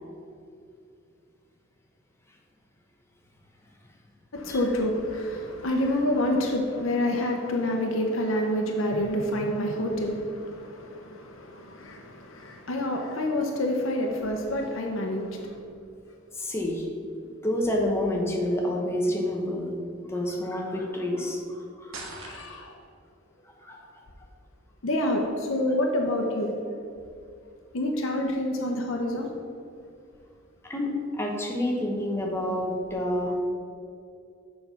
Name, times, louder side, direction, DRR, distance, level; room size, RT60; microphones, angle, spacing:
voice 1, 4.3-15.6 22.2-22.8 24.8-26.5 27.7-29.3, left 1 dB, 75° left, 1 dB, 0.8 m, -28 dB
voice 2, 16.3-16.9 17.4-19.7 20.1-22.4 23.6-24.1 30.6-33.4, left 1 dB, 15° left, 0 dB, 1.1 m, -29 dB
sound 1, 21.9-22.9, right 3 dB, 70° right, 1.2 m, -41 dB
6.9 x 5.2 x 5.8 m, 2.5 s
head